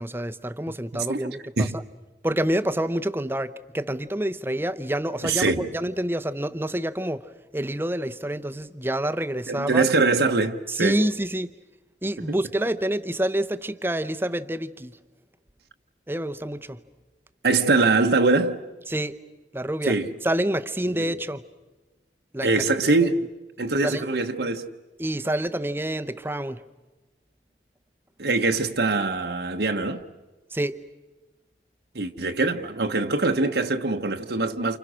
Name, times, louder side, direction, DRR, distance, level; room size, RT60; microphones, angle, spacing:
voice 1, 0.0-1.8 2.2-9.9 10.7-11.5 12.0-15.0 16.1-16.8 18.9-19.2 19.5-20.0 20.2-21.4 22.3-22.6 23.8-24.1 25.0-26.6 30.5-30.8, right 1 dB, 10° right, 0.8 m, -27 dB
voice 2, 5.2-5.7 9.5-11.0 17.4-18.6 19.9-20.1 20.9-21.1 22.4-23.2 23.6-24.7 28.2-30.0 31.9-34.8, right 3 dB, 70° right, 1.1 m, -23 dB
29.5 x 29.0 x 6.3 m
head